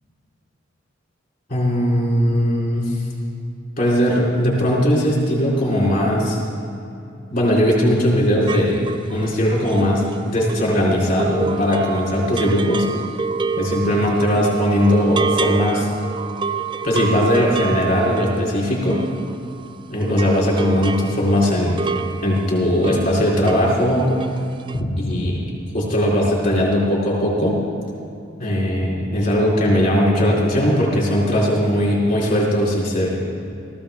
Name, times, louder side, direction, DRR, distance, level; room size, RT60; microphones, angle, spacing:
voice 1, 1.5-3.0 3.8-6.4 7.3-8.8 9.1-12.9 13.6-15.9 16.8-19.0 19.9-21.8 22.2-24.1 24.7-25.4 25.7-27.6 28.4-33.2, equal, 50° left, -5 dB, 3.9 m, -19 dB
sound 1, 8.5-19.8 20.0-23.7 24.0-24.4 24.7-24.8, right 4 dB, 25° right, 0.3 m, -28 dB
16.5 x 15.0 x 3.6 m, 2.7 s
head